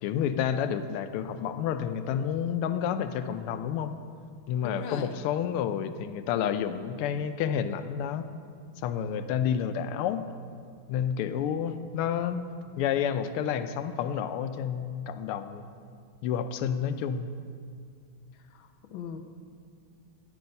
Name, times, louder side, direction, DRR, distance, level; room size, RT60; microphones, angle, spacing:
voice 1, 0.0-3.9 4.5-8.3 8.8-10.3 10.9-12.5 12.8-15.6 16.2-17.3, left 8 dB, 85° left, 10 dB, 1.5 m, -30 dB
voice 2, 4.6-5.2 18.3-19.2, left 7 dB, 70° left, 6 dB, 1.5 m, -40 dB
13.5 x 9.1 x 5.4 m, 2.2 s
omnidirectional pair, 2.4 m